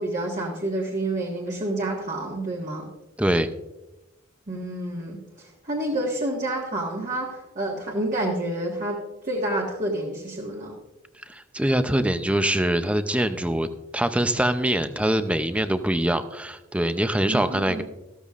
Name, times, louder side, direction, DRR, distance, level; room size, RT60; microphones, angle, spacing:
voice 1, 0.0-2.9 4.5-10.7 17.3-17.8, right 1 dB, 40° right, -3 dB, 1.5 m, -29 dB
voice 2, 3.2-3.5 11.3-13.7 13.9-17.8, right 1 dB, 5° right, 10 dB, 0.5 m, -23 dB
14.5 x 13.5 x 2.5 m, 1.0 s
head